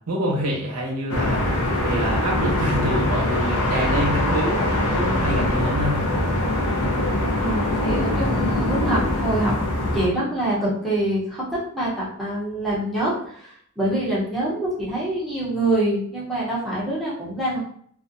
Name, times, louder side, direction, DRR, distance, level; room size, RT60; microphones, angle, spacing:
voice 1, 0.1-1.4 1.8-6.0, equal, 90° right, -1 dB, 0.8 m, -26 dB
sound 1, 1.1-10.1, left 1 dB, 80° left, 0.6 m, -22 dB
voice 2, 7.4-9.5 9.9-17.6, right 1 dB, ahead, -8 dB, 0.7 m, -25 dB
2.5 x 2.1 x 2.5 m, 0.62 s
head